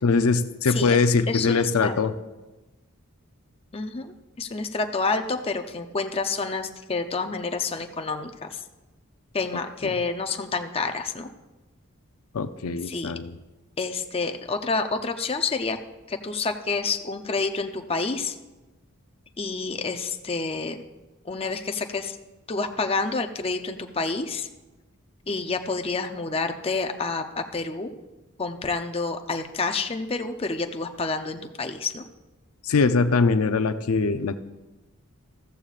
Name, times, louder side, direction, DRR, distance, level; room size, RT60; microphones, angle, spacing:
voice 1, 0.0-2.1 9.8-9.9 12.3-13.3 32.6-34.4, left 4 dB, 85° left, 10 dB, 0.5 m, -22 dB
voice 2, 0.7-1.0 1.3-1.9 3.7-8.6 9.3-11.3 12.8-13.1 13.8-15.8 16.1-18.4 19.4-20.8 21.2-22.2 22.5-24.5 25.3-27.9 28.4-32.0, left 4 dB, 25° left, 6 dB, 0.6 m, -28 dB
14.5 x 14.0 x 2.5 m, 1.1 s
head